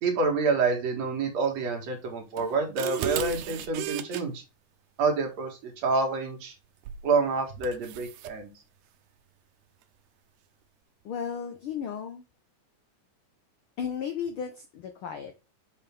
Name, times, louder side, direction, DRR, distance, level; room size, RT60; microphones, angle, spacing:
voice 1, 0.0-4.4 5.0-6.5 7.0-8.5, right 4 dB, 65° right, 3 dB, 2.6 m, -27 dB
sound 1, 2.4-4.2 6.9-7.1 7.6-8.4, right 11 dB, 85° right, 2.1 m, -34 dB
voice 2, 11.0-12.2 13.8-15.4, left 7 dB, 75° left, 7 dB, 1.2 m, -34 dB
6.6 x 5.9 x 3.4 m, 0.28 s
omnidirectional pair, 3.4 m